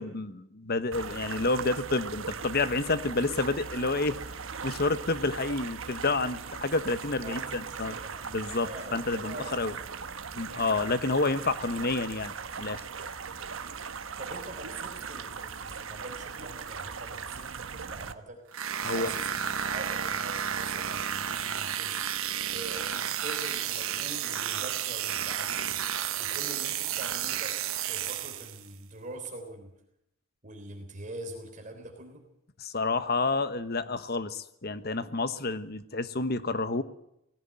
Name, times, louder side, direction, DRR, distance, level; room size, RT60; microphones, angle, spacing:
voice 1, 0.0-4.2 4.6-7.9 8.3-9.7 10.3-12.3 12.6-12.8 18.8-19.1 32.6-36.8, left 3 dB, 50° left, 12 dB, 1.2 m, -29 dB
sound 1, 0.9-18.1, right 5 dB, 70° right, 1.2 m, -39 dB
voice 2, 7.2-8.3 8.6-9.7 14.2-18.4 18.9-22.0 22.5-25.8 26.2-29.7 30.4-32.3, right 2 dB, 40° right, 1 dB, 3.6 m, -44 dB
sound 2, 18.5-28.7, right 9 dB, 90° right, 1.4 m, -32 dB
19.5 x 16.5 x 9.0 m, 0.81 s
head